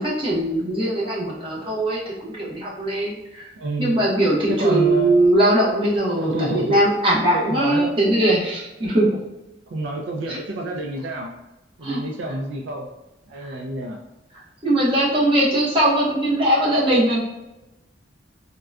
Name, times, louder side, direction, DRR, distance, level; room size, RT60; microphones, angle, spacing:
voice 1, 0.0-3.5 3.8-9.1 10.3-10.4 11.8-12.0 13.4-13.5 14.6-17.2, right 1 dB, 30° right, -6 dB, 0.8 m, -20 dB
voice 2, 3.6-4.0 4.5-5.3 6.2-6.8 7.3-8.0 9.1-9.2 9.7-11.3 11.8-12.9 13.3-14.0, right 1 dB, 80° right, 1 dB, 0.4 m, -28 dB
3.6 x 2.2 x 2.3 m, 1.0 s
head